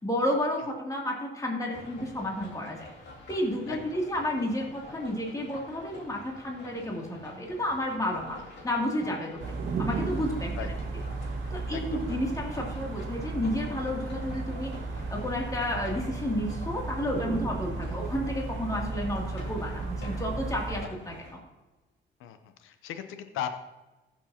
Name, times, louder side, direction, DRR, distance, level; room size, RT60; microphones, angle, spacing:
voice 1, 0.0-2.9 3.3-8.4 8.6-9.4 9.8-10.5 11.5-14.8 15.1-21.1, left 1 dB, 15° left, -1 dB, 2.6 m, -31 dB
sound 1, 1.7-21.3, left 2 dB, 60° left, 3.0 m, -48 dB
voice 2, 3.7-4.0 8.4-8.5 10.6-10.7 11.7-12.2 20.8-20.9 22.2-23.5, left 9 dB, 90° left, 9 dB, 0.7 m, -38 dB
sound 2, 9.4-20.8, right 3 dB, 75° right, 1.9 m, -34 dB
15.0 x 7.2 x 2.8 m, 1.1 s
cardioid pair, 90°, 20 cm